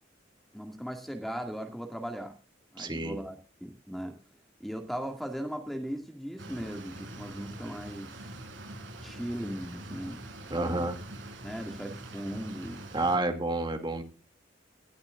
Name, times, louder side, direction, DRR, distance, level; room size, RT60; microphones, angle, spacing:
voice 1, 0.5-2.4 2.7-4.2 4.6-8.1 9.0-10.9 11.4-12.9, equal, ahead, 4 dB, 2.0 m, -38 dB
voice 2, 2.8-3.2 10.5-11.0 12.9-14.0, right 2 dB, 25° right, 6 dB, 2.3 m, -29 dB
sound 1, 6.4-13.2, right 1 dB, 75° right, 6.5 m, -44 dB
19.5 x 13.5 x 2.4 m, 0.34 s
head